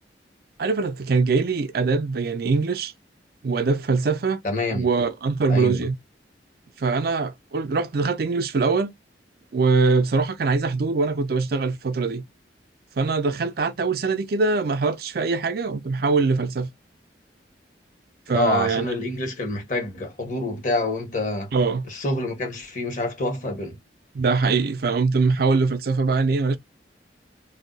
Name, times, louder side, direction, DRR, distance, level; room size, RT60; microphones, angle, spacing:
voice 1, 0.6-2.9 3.4-4.4 4.7-5.9 6.8-8.9 9.5-12.2 13.0-16.7 18.3-18.9 21.5-21.9 24.1-26.6, right 4 dB, 60° right, 0.5 m, -22 dB
voice 2, 4.4-4.9 5.5-5.9 18.3-21.5 21.9-23.8, left 2 dB, 45° left, 1.4 m, -27 dB
2.6 x 2.3 x 3.9 m
head